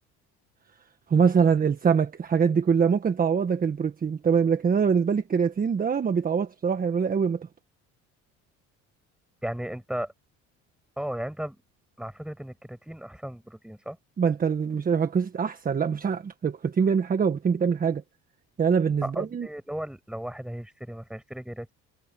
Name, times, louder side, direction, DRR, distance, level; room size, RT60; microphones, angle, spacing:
voice 1, 1.1-7.5 14.2-18.0 18.6-19.5, right 6 dB, 30° right, 1.5 m, -24 dB
voice 2, 9.4-10.1 11.0-11.6 12.0-14.0 19.0-21.7, equal, ahead, 5.8 m, -35 dB
cardioid pair, 115°, 30 cm